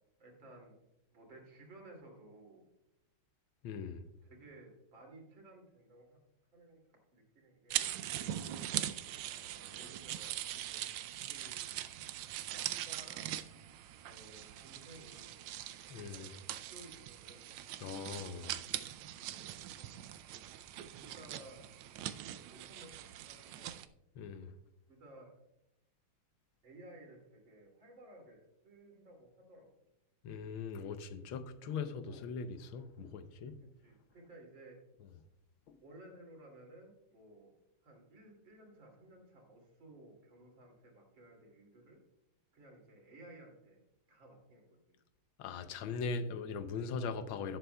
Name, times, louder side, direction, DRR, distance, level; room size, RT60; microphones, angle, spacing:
voice 1, 0.2-0.8 1.1-2.6 4.2-6.2 6.5-6.8 7.1-8.3 9.2-10.8 11.2-11.8 12.4-13.3 14.0-15.5 15.9-16.4 16.7-17.4 19.1-19.9 20.9-21.7 22.3-23.7 24.9-25.3 26.6-28.4 28.6-29.7 32.1-32.2 33.8-34.8 35.8-37.5 37.8-42.0 42.5-43.8 44.1-44.7 46.9-47.6, right 1 dB, 70° right, 3.5 m, -57 dB
voice 2, 3.6-4.0 8.3-8.4 15.9-16.3 17.8-18.6 24.2-24.5 30.2-33.5 35.0-35.1 35.7-35.8 45.4-47.6, left 5 dB, 85° left, 1.6 m, -40 dB
sound 1, 7.7-23.9, right 12 dB, 90° right, 1.4 m, -42 dB
17.0 x 7.9 x 2.3 m
omnidirectional pair, 2.2 m